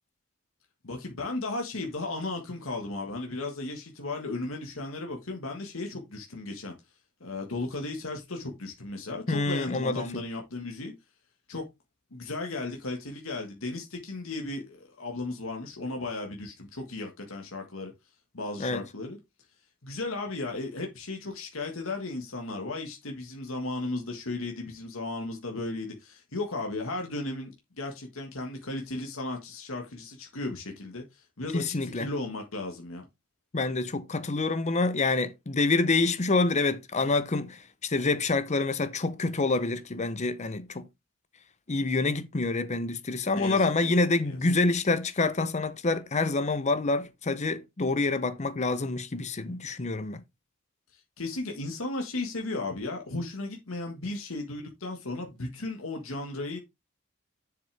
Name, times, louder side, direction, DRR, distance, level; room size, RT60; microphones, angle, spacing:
voice 1, 0.8-6.7 7.2-10.9 11.5-11.6 12.1-17.9 18.3-19.2 19.8-33.0 43.4-44.0 44.3-44.4 50.9-56.6, left 2 dB, 75° left, 1.6 m, -35 dB
voice 2, 9.3-10.2 18.6-18.8 31.5-32.1 33.5-40.9 41.7-50.2, left 3 dB, 35° left, 0.7 m, -27 dB
7.6 x 6.8 x 3.4 m
head